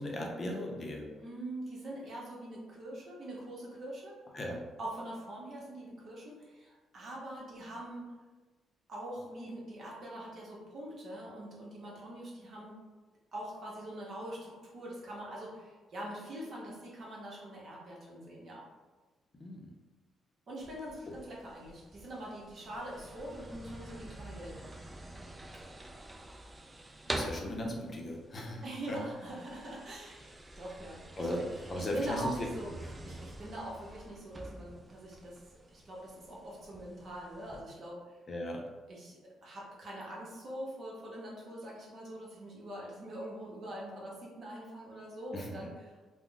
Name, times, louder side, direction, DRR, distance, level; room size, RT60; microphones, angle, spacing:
voice 1, 0.0-1.1 4.3-4.6 19.4-19.7 27.1-29.0 31.2-32.3 38.3-38.6 45.3-45.5, left 1 dB, 40° left, 0 dB, 0.6 m, -37 dB
voice 2, 1.1-4.2 4.8-8.2 8.9-12.8 13.3-18.6 20.5-24.6 28.6-30.3 30.6-32.7 33.0-35.4 35.7-38.2 38.9-45.9, right 1 dB, 55° right, -4 dB, 0.8 m, -43 dB
sound 1, 20.6-37.6, right 1 dB, 20° right, 0.3 m, -46 dB
2.4 x 2.1 x 3.7 m, 1.3 s
cardioid pair, 90°, 0 cm